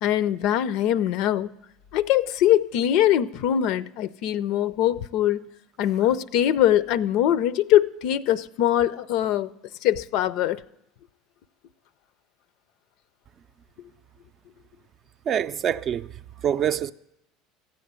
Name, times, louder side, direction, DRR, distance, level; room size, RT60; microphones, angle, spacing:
voice 1, 0.0-1.5 1.9-5.5 5.8-9.5 9.8-10.6, left 11 dB, 65° left, 0.5 m, -22 dB
voice 2, 15.3-16.9, right 9 dB, 40° right, 0.5 m, -26 dB
14.5 x 7.7 x 9.6 m
supercardioid pair, 110°, 0 cm